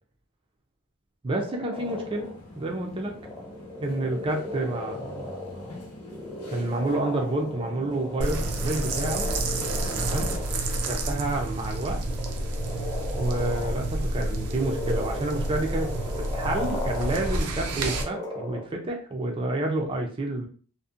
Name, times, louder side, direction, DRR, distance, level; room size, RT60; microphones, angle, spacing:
voice 1, 1.2-3.1 3.8-5.7 6.5-9.3 10.0-10.4 10.8-12.0 13.1-20.5, right 2 dB, 25° right, 1 dB, 0.4 m, -29 dB
sound 1, 1.5-2.3 3.1-11.0 11.4-11.6 11.9-18.7, left 1 dB, 15° left, 0.7 m, -37 dB
sound 2, 1.7-10.4, left 1 dB, 90° left, 0.8 m, -44 dB
sound 3, 8.2-18.0, right 2 dB, 85° right, 0.4 m, -29 dB
2.6 x 2.1 x 2.4 m, 0.42 s
head